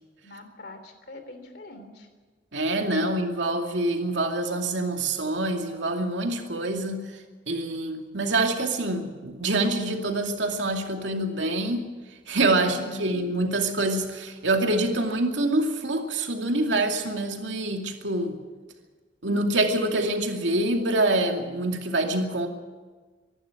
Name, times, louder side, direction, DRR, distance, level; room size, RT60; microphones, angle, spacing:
voice 1, 0.2-2.1 3.0-3.1 12.6-13.3, left 1 dB, 60° left, 7 dB, 3.3 m, -43 dB
voice 2, 2.5-7.2 7.5-11.9 12.3-18.4 19.2-22.5, right 2 dB, 90° right, 3 dB, 2.4 m, -26 dB
25.0 x 11.5 x 9.3 m, 1.4 s
head